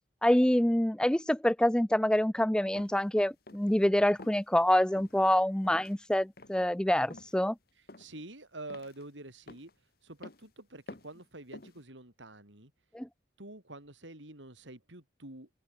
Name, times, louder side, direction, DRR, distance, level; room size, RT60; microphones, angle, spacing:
voice 1, 0.2-7.5 12.9-13.1, left 1 dB, 5° left, 0.4 m, -26 dB
sound 1, 2.8-3.0 3.5-3.8 4.2-4.4 4.9-5.2 5.6-6.0 6.4-6.7 7.1-7.4 7.9-8.2 8.7-9.0 9.5-9.7 10.2-10.5 10.9-11.2 11.5-11.8, left 2 dB, 55° left, 1.6 m, -50 dB
voice 2, 7.8-9.7 10.0-12.7 13.4-15.5, right 2 dB, 85° right, 4.6 m, -47 dB
head